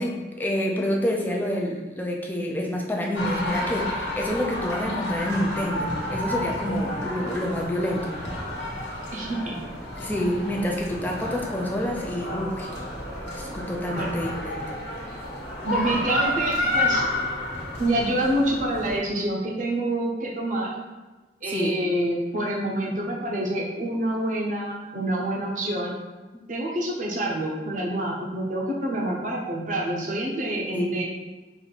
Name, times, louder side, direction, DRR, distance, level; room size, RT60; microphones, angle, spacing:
voice 1, 0.0-8.1 10.0-12.7 13.3-14.7 21.4-21.8 30.7-30.9, equal, 10° left, -1 dB, 0.5 m, -28 dB
sound 1, 3.1-19.0, left 1 dB, 85° left, 1.1 m, -30 dB
voice 2, 9.1-9.6 13.9-14.1 15.6-17.1 17.8-20.7 21.4-25.9 26.5-31.0, right 1 dB, 45° right, -2 dB, 0.9 m, -27 dB
4.5 x 2.7 x 4.0 m, 1.2 s
head